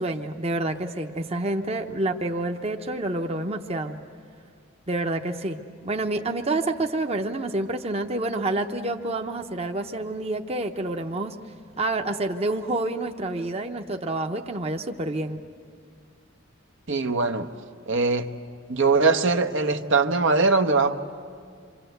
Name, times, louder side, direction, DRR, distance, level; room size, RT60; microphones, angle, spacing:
voice 1, 0.0-4.0 4.9-11.4 11.8-15.4, right 2 dB, 30° right, 4 dB, 0.9 m, -28 dB
voice 2, 16.9-17.5 17.9-18.3 18.7-21.0, right 3 dB, 65° right, 6 dB, 1.0 m, -21 dB
27.5 x 25.5 x 8.0 m, 2.1 s
head